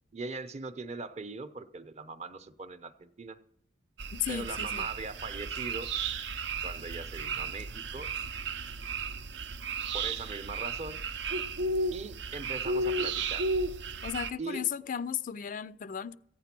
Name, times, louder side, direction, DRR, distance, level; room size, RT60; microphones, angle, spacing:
voice 1, 0.1-3.4 4.3-5.9 6.6-8.1 9.9-11.0 11.9-13.5 14.4-14.7, right 3 dB, 35° right, 11 dB, 0.7 m, -40 dB
sound 1, 4.0-14.3, right 3 dB, 75° right, 0.6 m, -34 dB
voice 2, 4.1-4.9 14.0-16.2, left 9 dB, 45° left, 16 dB, 0.4 m, -35 dB
15.0 x 9.1 x 6.0 m, 0.72 s
head